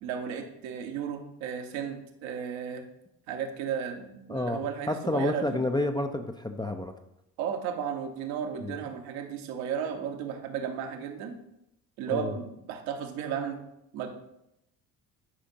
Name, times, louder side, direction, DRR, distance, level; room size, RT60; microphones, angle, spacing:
voice 1, 0.0-2.8 3.3-5.6 7.4-11.4 12.0-13.6 13.9-14.1, right 7 dB, 75° right, 4 dB, 1.2 m, -34 dB
voice 2, 4.3-6.9 8.6-8.7 12.1-12.4, left 1 dB, 10° left, 5 dB, 0.4 m, -30 dB
10.0 x 5.0 x 2.8 m, 0.82 s
hypercardioid pair, 55°, 48 cm